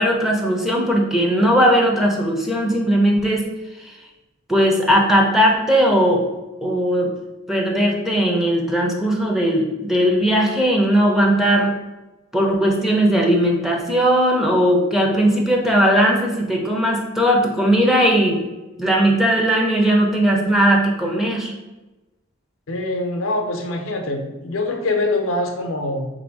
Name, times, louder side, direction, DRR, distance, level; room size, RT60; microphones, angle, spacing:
voice 1, 0.0-3.5 3.8-4.0 4.5-6.2 6.6-7.1 7.5-11.7 12.3-18.4 18.8-21.5, equal, ahead, -1 dB, 0.6 m, -18 dB
voice 2, 22.7-26.1, left 2 dB, 85° left, 4 dB, 0.7 m, -24 dB
3.7 x 2.6 x 4.6 m, 1.1 s
head